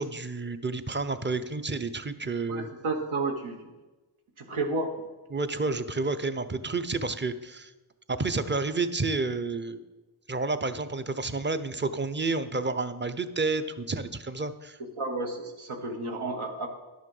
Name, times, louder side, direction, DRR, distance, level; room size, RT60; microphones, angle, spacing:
voice 1, 0.0-2.7 5.3-7.7 8.1-9.8 10.3-14.8, right 3 dB, 25° right, 11 dB, 0.6 m, -30 dB
voice 2, 2.5-3.6 4.4-4.9 15.0-16.7, right 3 dB, 80° right, 3 dB, 1.2 m, -31 dB
11.0 x 6.3 x 5.4 m, 1.1 s
cardioid pair, 55°, 49 cm